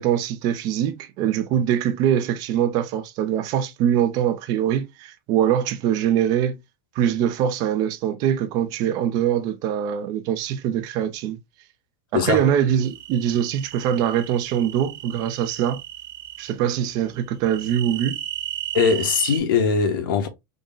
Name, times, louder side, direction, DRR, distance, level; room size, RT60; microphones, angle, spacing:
voice 1, 0.0-6.6 7.0-11.4 12.1-15.8 16.4-18.2, right 10 dB, 35° right, 0.5 m, -23 dB
sound 1, 12.8-16.5 17.5-19.4, right 12 dB, 75° right, 1.0 m, -35 dB
voice 2, 18.7-20.3, left 6 dB, 85° left, 1.2 m, -20 dB
3.8 x 2.1 x 3.8 m
supercardioid pair, 170°, 11 cm